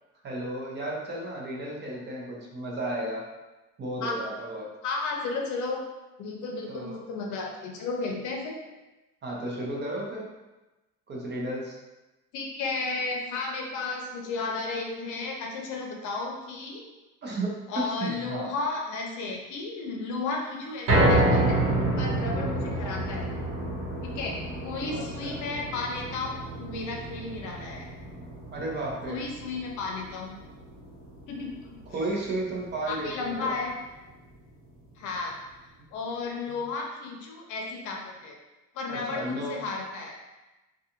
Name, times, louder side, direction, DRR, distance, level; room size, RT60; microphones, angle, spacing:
voice 1, 0.2-3.3 3.8-4.7 6.7-7.0 9.2-10.2 11.1-11.8 17.2-18.5 22.4-22.7 24.9-25.4 28.5-29.2 31.9-33.6 36.5-36.6 38.9-39.6, right 1 dB, 35° right, -3 dB, 0.7 m, -33 dB
voice 2, 4.8-5.8 6.2-8.6 12.3-16.8 17.7-21.6 22.0-23.3 24.0-27.9 29.1-30.4 31.3-31.8 32.9-33.7 35.0-35.3 35.9-38.4 38.7-40.1, left 3 dB, 65° left, 0 dB, 0.6 m, -33 dB
sound 1, 20.9-33.1 33.5-33.6 34.1-34.2, right 1 dB, 65° right, 0.9 m, -29 dB
2.5 x 2.3 x 2.8 m, 1.1 s
cardioid pair, 110°, 33 cm